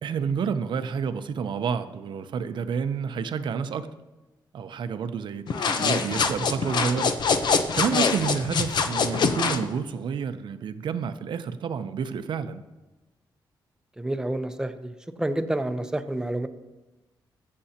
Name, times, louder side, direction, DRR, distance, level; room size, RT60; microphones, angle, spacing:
voice 1, 0.0-3.9 4.5-7.1 7.7-12.6, right 6 dB, 70° right, 10 dB, 0.7 m, -29 dB
sound 1, 5.5-9.6, left 5 dB, 65° left, 0.8 m, -24 dB
voice 2, 14.0-16.5, right 1 dB, 10° right, 8 dB, 0.8 m, -29 dB
22.5 x 7.7 x 2.9 m, 1.1 s
cardioid pair, 100°, 8 cm